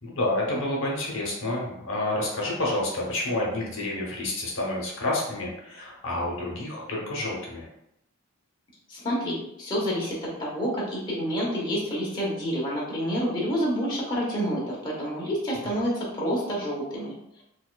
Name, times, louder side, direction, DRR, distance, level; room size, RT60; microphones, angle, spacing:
voice 1, 0.0-7.7, left 1 dB, 65° left, -3 dB, 0.8 m, -29 dB
voice 2, 8.9-17.1, equal, 20° left, -6 dB, 0.8 m, -28 dB
4.1 x 2.3 x 2.3 m, 0.81 s
head